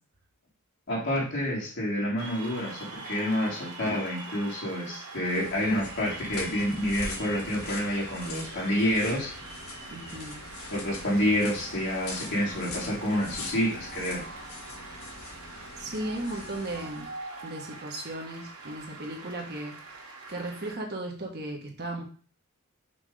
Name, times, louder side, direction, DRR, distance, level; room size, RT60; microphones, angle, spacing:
voice 1, 0.9-9.3 10.7-14.3, equal, 55° left, -5 dB, 3.2 m, -28 dB
Cheering / Applause, 2.2-20.7, right 3 dB, 80° right, 1.9 m, -44 dB
sound 1, 5.2-17.1, left 3 dB, 80° left, 1.8 m, -43 dB
voice 2, 9.9-10.4 15.8-17.1 17.4-19.7 20.3-22.0, right 1 dB, 50° right, 1 dB, 1.5 m, -36 dB
6.0 x 3.6 x 5.0 m, 0.40 s
head